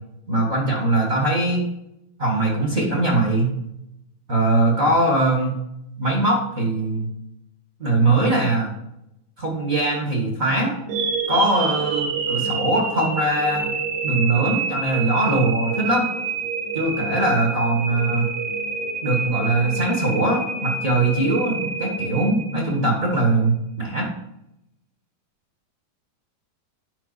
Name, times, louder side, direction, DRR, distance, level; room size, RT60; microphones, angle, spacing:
voice 1, 0.3-1.6 2.2-3.5 4.3-5.5 6.0-7.1 7.8-8.7 9.4-10.7 11.3-13.7 14.0-16.0 16.7-18.3 19.0-24.1, right 2 dB, 45° right, -1 dB, 1.0 m, -21 dB
sound 1, 10.9-23.0, right 4 dB, 65° right, 1.7 m, -27 dB
10.5 x 5.5 x 4.1 m, 0.81 s
omnidirectional pair, 4.4 m